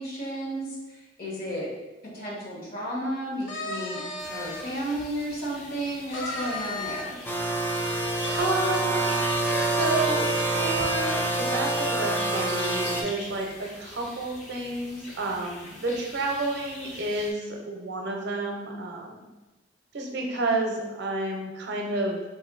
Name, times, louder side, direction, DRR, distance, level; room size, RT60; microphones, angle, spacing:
voice 1, 0.0-1.7 2.1-7.2, right 1 dB, 55° left, -5 dB, 1.2 m, -33 dB
sound 1, 3.4-4.7 5.2-5.3 6.1-7.4 8.2-9.2 9.4-9.7 10.0-10.1 10.4-10.9, left 2 dB, 80° left, 0.6 m, -35 dB
sound 2, 4.2-17.3, left 1 dB, 40° left, 0.7 m, -42 dB
sound 3, 7.2-13.0, right 2 dB, 10° left, 0.3 m, -26 dB
voice 2, 8.4-9.1 9.7-10.3 10.5-19.2 19.9-22.2, right 2 dB, 60° right, 1 dB, 0.6 m, -30 dB
4.3 x 2.7 x 2.5 m, 1.1 s
head